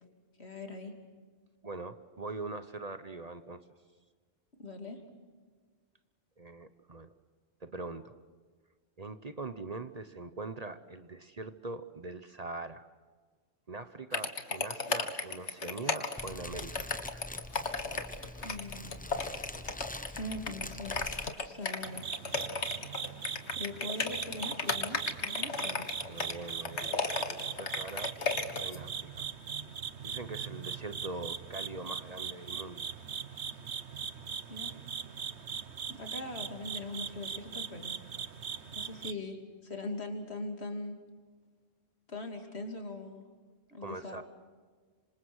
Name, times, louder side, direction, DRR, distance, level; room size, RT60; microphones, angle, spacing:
voice 1, 0.4-0.9 4.6-5.0 18.4-18.9 20.1-21.0 21.4-22.0 23.5-25.9 34.5-34.8 35.9-38.0 38.7-41.0 42.1-43.2 43.7-44.2, left 2 dB, 70° left, 4 dB, 3.3 m, -41 dB
voice 2, 1.6-3.6 6.4-7.1 7.6-8.1 9.0-12.9 13.7-16.9 26.1-28.2 28.4-29.3 30.0-32.8 43.8-44.2, right 3 dB, 40° right, 11 dB, 1.0 m, -42 dB
sound 1, 14.1-28.8, left 4 dB, 90° left, 2.0 m, -34 dB
Fire, 16.2-21.3, left 1 dB, 10° left, 0.8 m, -44 dB
sound 2, 21.8-39.1, right 7 dB, 80° right, 1.3 m, -40 dB
26.5 x 26.0 x 6.4 m, 1.5 s
omnidirectional pair, 1.1 m